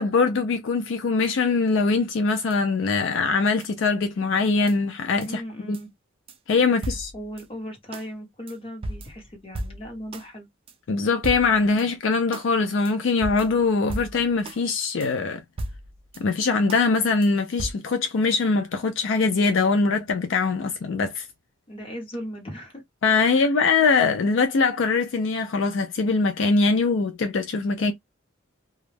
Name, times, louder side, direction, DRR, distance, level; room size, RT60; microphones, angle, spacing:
voice 1, 0.0-5.4 5.7-5.8 6.5-7.1 10.9-15.4 16.2-21.3 23.0-27.9, left 4 dB, 65° left, 0.4 m, -22 dB
sound 1, 2.5-2.6 3.6-3.7 4.7-4.8 5.2-5.3 5.7-5.8 6.3-6.4 6.8-7.5 7.9-8.1 8.5-8.6 8.8-10.3 10.7-10.8 11.2-11.9 12.3-12.5 12.8-12.9 13.2-14.6 15.0-15.1 15.6-16.2 16.7-16.9 17.2-17.3 17.6-17.7, right 1 dB, 25° right, 0.4 m, -35 dB
voice 2, 5.3-5.9 6.8-10.5 21.7-22.8 23.3-23.5 27.8-27.9, equal, 25° left, 1.0 m, -37 dB
2.3 x 2.0 x 3.2 m
head